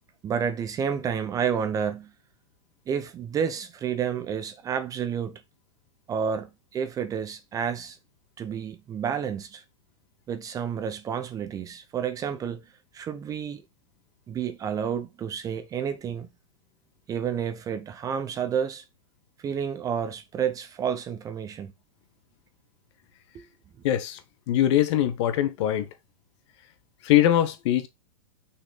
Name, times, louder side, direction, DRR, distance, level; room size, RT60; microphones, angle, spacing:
voice 1, 0.2-2.1 2.9-5.4 6.1-8.0 8.4-9.6 10.3-12.6 12.9-13.6 14.3-16.3 17.1-18.8 19.4-21.7 23.3-23.4, right 7 dB, 20° right, 0.7 m, -30 dB
voice 2, 23.8-24.2 24.5-25.9 27.0-27.9, left 12 dB, 55° left, 1.2 m, -22 dB
6.0 x 4.2 x 3.9 m
hypercardioid pair, 145°, 18 cm